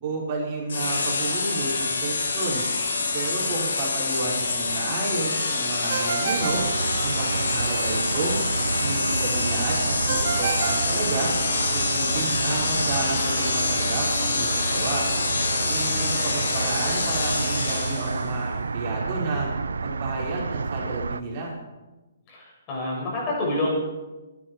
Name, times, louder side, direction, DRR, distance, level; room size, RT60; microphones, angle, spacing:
voice 1, 0.0-2.7 3.1-6.6 7.0-8.4 8.8-11.3 11.7-15.1 15.7-19.5 19.8-21.5, right 2 dB, 40° right, -4 dB, 5.2 m, -31 dB
sound 1, 0.7-18.3, left 4 dB, 75° left, 4.7 m, -26 dB
Ringtone, 5.9-7.6 10.1-11.8, right 7 dB, 60° right, 1.6 m, -30 dB
sound 2, 6.4-21.2, right 4 dB, 90° right, 0.7 m, -30 dB
voice 2, 22.3-23.8, left 1 dB, 30° left, -3 dB, 6.4 m, -27 dB
24.0 x 10.5 x 4.7 m, 1.1 s
hypercardioid pair, 150°, 0 cm